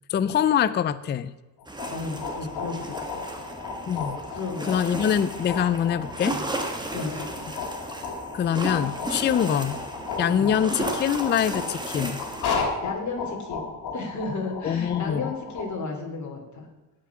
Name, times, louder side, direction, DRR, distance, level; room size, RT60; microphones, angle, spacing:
voice 1, 0.1-1.3 3.9-4.2 4.7-6.4 8.3-9.8 10.2-12.2 14.6-15.3, left 9 dB, 30° left, 15 dB, 0.4 m, -24 dB
sound 1, 1.6-15.6, left 4 dB, 70° left, 2.9 m, -34 dB
sound 2, 1.7-12.6, right 2 dB, 10° right, 1.5 m, -35 dB
voice 2, 1.9-3.2 4.3-4.7 6.9-7.3 9.4-9.6 10.2-10.5 12.8-13.7 13.9-16.7, left 3 dB, 45° left, 2 dB, 2.9 m, -33 dB
17.5 x 5.9 x 6.0 m, 1.1 s
cardioid pair, 125°, 40 cm